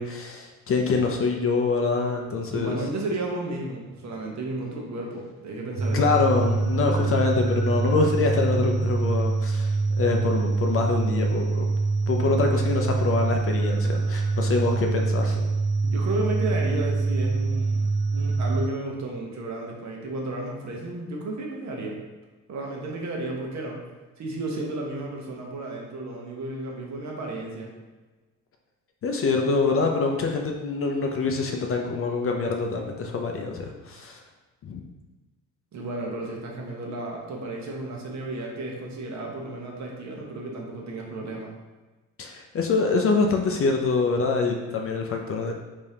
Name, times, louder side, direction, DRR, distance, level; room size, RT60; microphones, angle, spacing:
voice 1, 0.0-2.8 5.9-11.7 12.1-15.5 29.0-34.2 34.6-34.8 42.2-45.5, left 4 dB, 40° left, 3 dB, 0.5 m, -25 dB
voice 2, 2.5-6.1 15.8-22.0 22.5-23.8 24.2-27.7 35.7-41.5, right 2 dB, 50° right, 0 dB, 0.9 m, -33 dB
sound 1, 5.7-18.7, right 3 dB, 80° right, 0.8 m, -25 dB
3.4 x 3.4 x 2.8 m, 1.2 s
cardioid pair, 100°, 35 cm